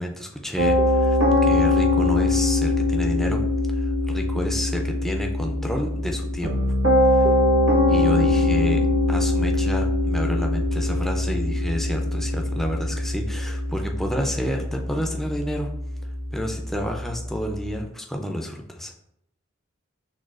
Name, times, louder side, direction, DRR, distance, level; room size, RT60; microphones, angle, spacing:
voice 1, 0.0-3.4 3.7-6.5 7.0-7.3 7.9-15.7 16.3-18.9, equal, ahead, 2 dB, 0.3 m, -30 dB
Piano, 0.6-17.7, left 1 dB, 65° right, 0.8 m, -22 dB
6.2 x 2.2 x 2.4 m, 0.77 s
head